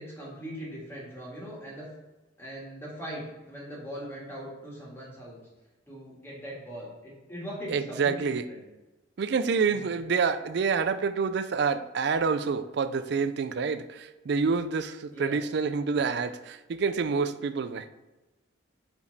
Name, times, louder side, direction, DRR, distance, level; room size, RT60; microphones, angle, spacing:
voice 1, 0.0-1.9 2.4-5.4 5.9-8.6 9.6-9.9 15.1-15.4, equal, 10° left, -5 dB, 1.8 m, -40 dB
voice 2, 7.7-8.4 9.2-17.9, right 5 dB, 55° right, 12 dB, 0.3 m, -27 dB
5.1 x 4.9 x 4.0 m, 1.1 s
head